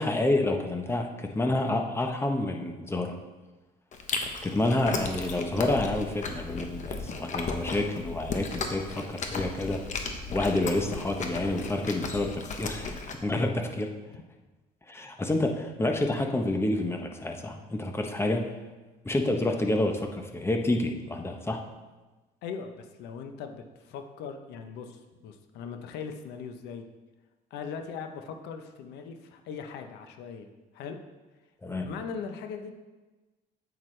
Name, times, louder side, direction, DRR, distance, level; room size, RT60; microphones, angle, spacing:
voice 1, 0.0-3.2 4.4-9.8 10.3-13.9 14.9-18.5 19.0-21.6 31.6-31.9, left 2 dB, 15° left, 4 dB, 0.9 m, -28 dB
Chewing mastication, 3.9-13.2, left 4 dB, 45° left, 1.0 m, -35 dB
voice 2, 22.4-26.9 27.5-30.5 30.7-31.0 31.8-32.7, left 6 dB, 85° left, 6 dB, 0.8 m, -40 dB
8.9 x 8.0 x 3.3 m, 1.2 s
cardioid pair, 110°, 17 cm